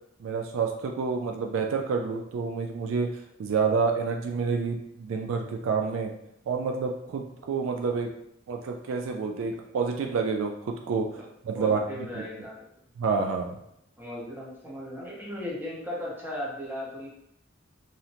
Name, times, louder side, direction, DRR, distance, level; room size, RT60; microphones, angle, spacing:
voice 1, 0.2-6.1 6.5-8.1 8.5-11.2 11.4-11.8 12.1-12.2 13.0-13.6, right 5 dB, 70° right, 3 dB, 0.3 m, -28 dB
voice 2, 11.5-12.7 14.0-17.1, left 1 dB, 10° right, -5 dB, 0.7 m, -36 dB
2.7 x 2.0 x 2.8 m, 0.76 s
head